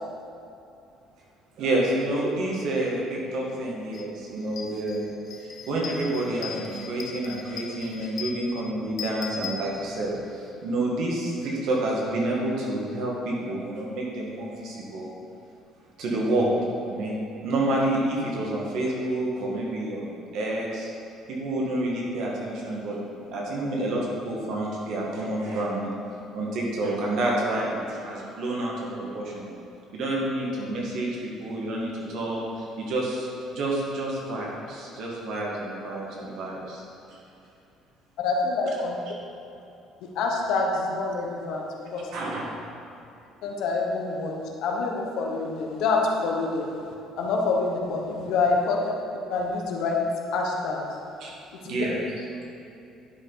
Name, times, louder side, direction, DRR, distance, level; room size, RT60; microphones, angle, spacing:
voice 1, 1.6-5.1 5.4-15.1 16.0-16.6 16.9-20.9 21.3-23.0 23.3-25.9 26.3-29.5 29.9-31.1 31.4-36.8 42.1-42.4 51.2-51.3 51.6-52.0, right 1 dB, 55° right, -3 dB, 1.7 m, -29 dB
sound 1, 3.9-4.1 4.4-10.3, left 6 dB, 40° left, 0.6 m, -39 dB
voice 2, 38.2-39.0 40.0-42.1 43.4-44.3 44.6-46.7 47.2-48.9 49.3-50.0 50.3-50.8 51.6-51.8, left 3 dB, 65° left, 0 dB, 1.1 m, -26 dB
10.5 x 5.1 x 4.0 m, 2.7 s
cardioid pair, 175°, 0 cm